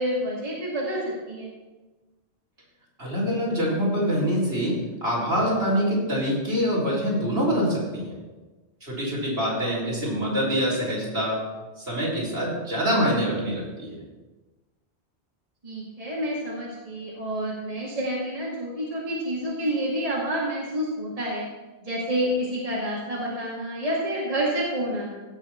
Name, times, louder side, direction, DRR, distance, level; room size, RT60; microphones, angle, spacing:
voice 1, 0.0-1.5 9.6-9.8 15.6-21.4 21.8-25.2, equal, 30° right, -5 dB, 2.2 m, -28 dB
voice 2, 3.0-8.2 8.8-11.4 11.8-14.0, equal, 65° right, -6 dB, 4.2 m, -25 dB
16.5 x 6.6 x 4.5 m, 1.2 s
omnidirectional pair, 1.2 m